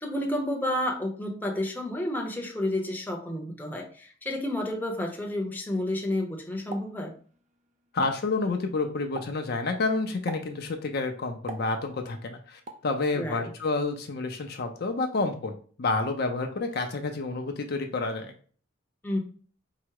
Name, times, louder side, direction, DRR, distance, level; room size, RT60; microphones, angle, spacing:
voice 1, 0.0-7.1 13.2-13.5 19.0-19.2, left 1 dB, 10° left, 1 dB, 0.7 m, -30 dB
Explosion, 6.7-7.6 7.9-8.3 9.2-9.5 10.3-10.6 11.5-12.2 12.7-12.9, right 3 dB, 35° right, 0.5 m, -40 dB
voice 2, 7.9-18.3, left 3 dB, 50° left, 5 dB, 0.5 m, -29 dB
4.7 x 2.0 x 4.6 m, 0.42 s
head